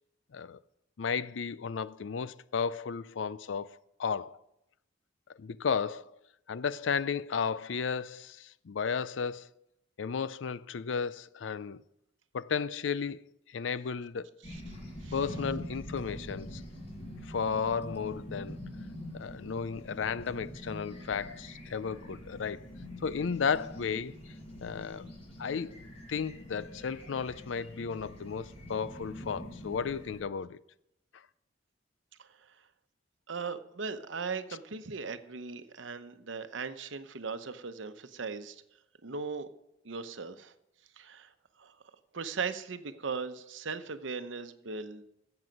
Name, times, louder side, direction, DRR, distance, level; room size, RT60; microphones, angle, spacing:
voice 1, 1.0-4.4 5.4-6.0 6.5-9.5 10.0-11.8 12.3-13.2 13.5-14.3 15.1-16.6 17.2-18.6 19.1-22.7 23.0-24.2 24.6-25.1 25.4-25.8 26.1-30.6, left 6 dB, 85° left, 0.5 m, -34 dB
sound 1, 14.4-30.2, equal, 35° left, 5.9 m, -45 dB
voice 2, 33.3-38.6 39.0-39.5 39.8-40.5 41.0-41.3 41.6-41.7 42.1-45.1, right 5 dB, 85° right, 0.9 m, -38 dB
13.5 x 8.0 x 5.3 m
head